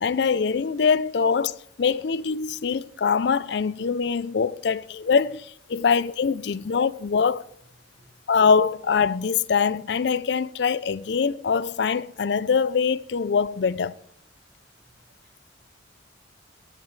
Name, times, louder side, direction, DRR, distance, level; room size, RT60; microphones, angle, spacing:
voice 1, 0.0-7.4 8.3-14.0, left 5 dB, 60° left, 0.4 m, -23 dB
voice 2, 15.2-15.5, equal, 60° right, 5.1 m, -63 dB
23.0 x 11.0 x 3.2 m
head